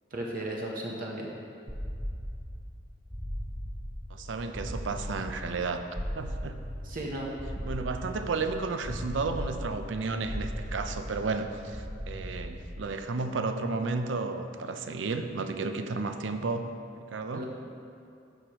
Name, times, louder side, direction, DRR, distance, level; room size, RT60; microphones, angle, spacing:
voice 1, 0.1-1.3 6.8-7.3 17.3-17.4, right 1 dB, 50° right, -2 dB, 0.8 m, -35 dB
sound 1, 1.7-13.0, equal, ahead, 0.7 m, -38 dB
voice 2, 4.1-5.8 6.1-6.6 7.7-16.7 17.1-17.4, right 3 dB, 90° right, 7 dB, 0.5 m, -32 dB
13.0 x 4.8 x 3.0 m, 2.4 s
head